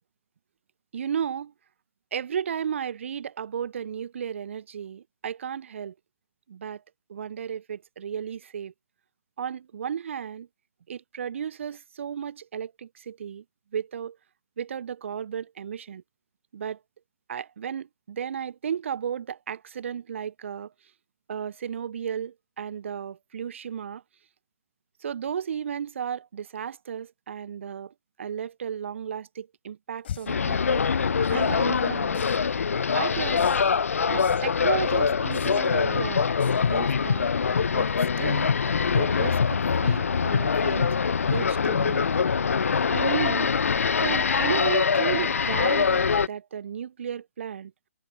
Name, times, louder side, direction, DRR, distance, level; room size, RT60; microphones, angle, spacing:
voice 1, 0.9-1.5 2.1-5.9 6.5-6.8 7.1-8.7 9.4-10.5 10.9-13.4 13.7-14.2 14.6-16.0 16.5-16.8 17.3-20.7 21.3-24.0 25.0-27.9 28.2-30.9 31.3-32.2 32.9-33.4 34.1-36.3 36.7-37.3 37.7-37.9 38.2-38.5 38.9-41.0 41.3-42.1 42.9-43.5 44.0-47.7, right 8 dB, 50° right, 0.5 m, -34 dB
sound 1, 30.0-30.4 31.2-31.6 32.1-32.6 33.4-33.8 34.2-34.6 35.3-35.8 36.4-36.8, left 10 dB, 45° left, 4.2 m, -41 dB
sound 2, 30.3-46.3, left 6 dB, 65° left, 0.6 m, -24 dB
figure-of-eight pair, 135°, 8 cm